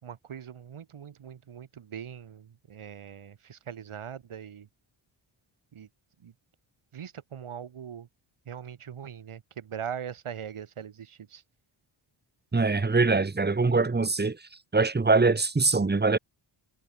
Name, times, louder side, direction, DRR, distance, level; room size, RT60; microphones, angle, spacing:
voice 1, 0.0-4.7 5.7-5.9 6.2-6.3 6.9-8.1 8.5-11.4, right 8 dB, 75° right, 4.6 m, -41 dB
voice 2, 12.5-14.4 14.7-16.2, right 3 dB, 20° right, 1.4 m, -23 dB
cardioid pair, 90°, 50 cm